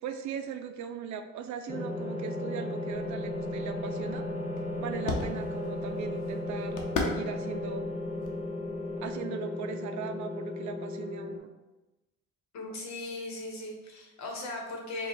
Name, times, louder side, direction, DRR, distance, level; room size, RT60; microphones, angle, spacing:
voice 1, 0.0-4.3 4.8-7.9 9.0-11.5, right 7 dB, 70° right, 8 dB, 0.5 m, -39 dB
sound 1, 1.7-11.4, left 2 dB, 25° left, 0.7 m, -35 dB
sound 2, 2.9-9.2, left 3 dB, 85° left, 0.8 m, -39 dB
voice 2, 12.5-15.1, left 2 dB, 65° left, 0 dB, 1.1 m, -38 dB
4.8 x 2.4 x 3.3 m, 1.1 s
cardioid pair, 90°, 30 cm